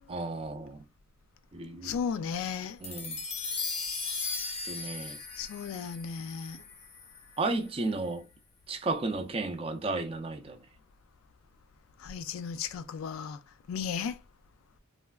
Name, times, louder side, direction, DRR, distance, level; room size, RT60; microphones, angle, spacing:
voice 1, 0.1-0.8 1.5-2.0 2.8-3.1 4.7-5.2 7.4-8.2 8.7-10.6, right 3 dB, 25° right, 0.4 m, -33 dB
voice 2, 1.8-2.8 5.4-6.6 12.0-13.4 13.7-14.2, left 6 dB, 85° left, 0.3 m, -35 dB
sound 1, 2.8-7.4, left 4 dB, 30° left, 0.5 m, -37 dB
3.2 x 2.2 x 2.2 m
head